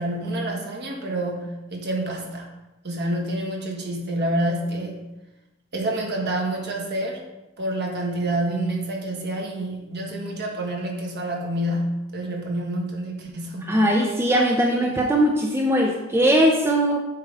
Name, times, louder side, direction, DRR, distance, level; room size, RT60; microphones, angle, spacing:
voice 1, 0.0-2.5 2.8-5.0 5.7-7.2 7.6-13.8 14.8-14.9, right 1 dB, 55° right, 0 dB, 1.5 m, -28 dB
voice 2, 13.7-17.0, equal, 10° right, 1 dB, 0.6 m, -20 dB
8.3 x 5.6 x 3.5 m, 1.0 s
head